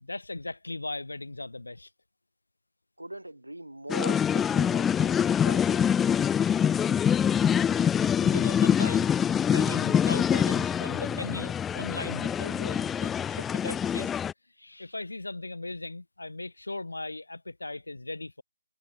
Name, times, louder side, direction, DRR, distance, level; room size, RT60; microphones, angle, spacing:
voice 1, 0.0-1.9 8.1-9.1 9.5-13.4 13.6-14.1 14.6-18.4, left 2 dB, 70° left, 1.9 m, -38 dB
voice 2, 3.0-5.9 13.3-13.8, right 1 dB, 85° right, 6.5 m, -41 dB
sound 1, 3.9-14.3, left 8 dB, 5° left, 0.4 m, -25 dB
figure-of-eight pair, 150°, 0 cm